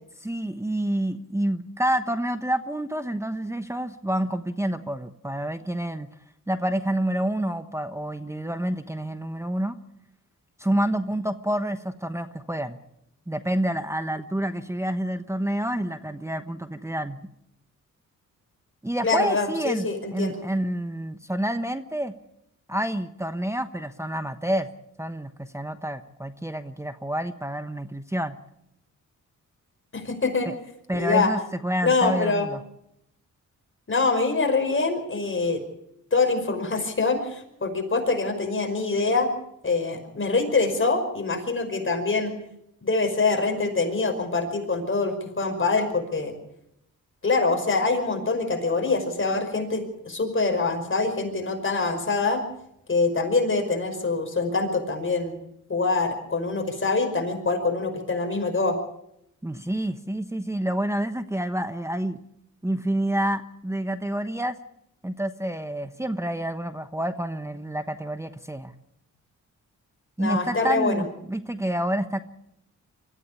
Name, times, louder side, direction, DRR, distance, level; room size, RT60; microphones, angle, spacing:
voice 1, 0.2-6.1 6.5-9.7 10.6-12.8 13.3-17.2 18.8-22.1 22.7-24.7 25.0-28.4 30.4-30.5 30.9-32.6 59.4-62.2 62.6-64.5 65.0-68.7 70.2-72.2, right 1 dB, 10° right, 8 dB, 1.1 m, -28 dB
voice 2, 19.0-20.4 29.9-30.5 31.0-31.3 31.8-32.5 33.9-35.6 36.1-39.3 39.6-42.3 42.8-46.4 47.2-52.4 52.9-55.4 55.7-58.8 70.2-71.0, left 3 dB, 40° left, 5 dB, 5.4 m, -24 dB
23.5 x 15.0 x 8.6 m, 0.79 s
cardioid pair, 75°, 32 cm